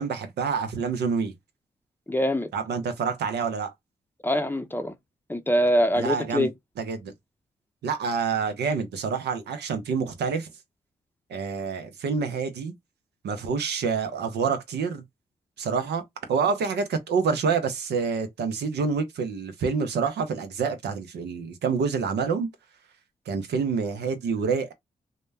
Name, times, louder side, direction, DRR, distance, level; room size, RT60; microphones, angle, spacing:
voice 1, 0.0-1.3 2.5-3.7 6.0-6.5 6.8-7.1 7.8-10.5 11.3-12.7 13.2-15.0 15.6-16.0 16.3-22.5 23.3-24.7, right 5 dB, 75° right, 0.6 m, -27 dB
voice 2, 2.1-2.5 4.2-4.9 5.3-6.5, equal, 10° left, 0.6 m, -24 dB
2.1 x 2.1 x 3.2 m
supercardioid pair, 40°, 17 cm